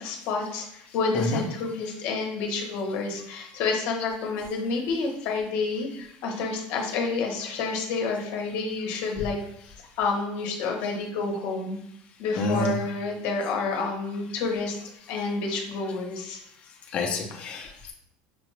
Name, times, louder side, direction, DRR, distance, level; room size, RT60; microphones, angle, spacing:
voice 1, 0.0-9.4 9.6-11.8 12.2-16.4, left 4 dB, 55° left, 1 dB, 0.9 m, -29 dB
voice 2, 12.4-12.8 16.9-17.9, left 3 dB, 30° left, 1 dB, 0.6 m, -28 dB
5.8 x 2.2 x 3.1 m, 0.73 s
cardioid pair, 170°, 4 cm